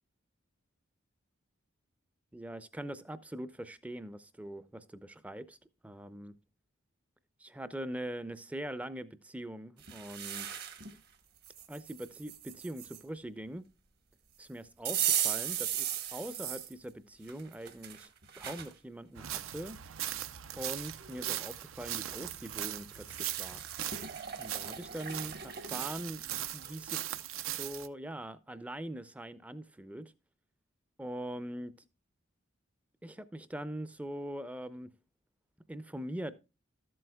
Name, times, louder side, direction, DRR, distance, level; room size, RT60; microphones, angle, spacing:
voice 1, 2.3-5.6 5.8-6.3 7.4-10.5 11.7-13.6 14.4-18.1 18.4-19.8 20.6-23.6 24.4-27.1 27.4-30.1 31.0-31.7 33.0-34.9 35.7-36.3, right 1 dB, 5° right, 0.4 m, -42 dB
sound 1, 9.8-10.9 11.4-13.0 14.9-16.7 17.3-18.7 19.3-19.4 20.5-20.6 20.8-21.4 22.7-26.7, right 10 dB, 50° right, 1.1 m, -37 dB
sound 2, 19.2-27.9, right 12 dB, 80° right, 0.6 m, -39 dB
13.5 x 7.7 x 2.2 m
head